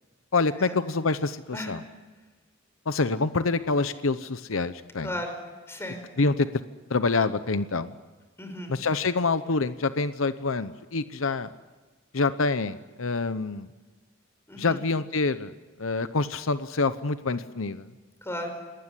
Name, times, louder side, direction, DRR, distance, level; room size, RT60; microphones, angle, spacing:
voice 1, 0.3-1.8 2.9-5.1 6.2-6.6 6.9-7.9 8.7-11.5 12.1-13.7 14.6-15.5 15.8-17.9, left 3 dB, 85° left, 12 dB, 0.9 m, -26 dB
voice 2, 5.0-5.4 5.7-6.0 8.4-8.7 14.5-14.8 18.2-18.5, left 1 dB, 15° left, 5 dB, 5.3 m, -35 dB
27.0 x 19.5 x 9.9 m, 1.3 s
head